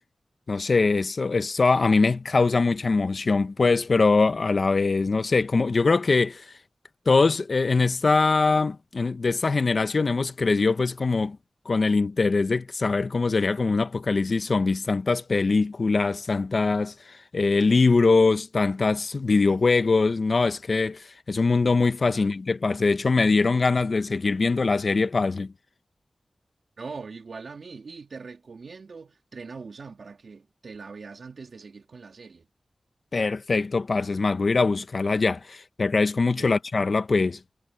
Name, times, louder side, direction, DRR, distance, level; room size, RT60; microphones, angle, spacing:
voice 1, 0.5-6.5 7.1-11.4 11.7-25.5 33.1-37.4, left 4 dB, 65° left, 1.0 m, -22 dB
voice 2, 26.8-32.5 36.3-36.5, right 4 dB, 80° right, 3.1 m, -42 dB
wide cardioid pair, 65°, 0 cm